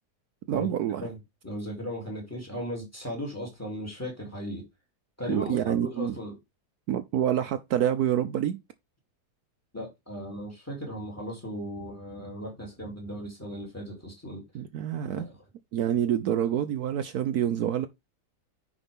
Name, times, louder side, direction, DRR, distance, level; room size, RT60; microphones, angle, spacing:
voice 1, 0.5-1.1 5.3-6.1 6.9-8.6 14.5-15.2 15.7-17.9, right 10 dB, 70° right, 1.2 m, -27 dB
voice 2, 1.4-4.6 5.2-6.3 9.7-14.4 15.1-15.3, equal, 10° left, 3.3 m, -36 dB
9.8 x 5.0 x 3.5 m
omnidirectional pair, 1.8 m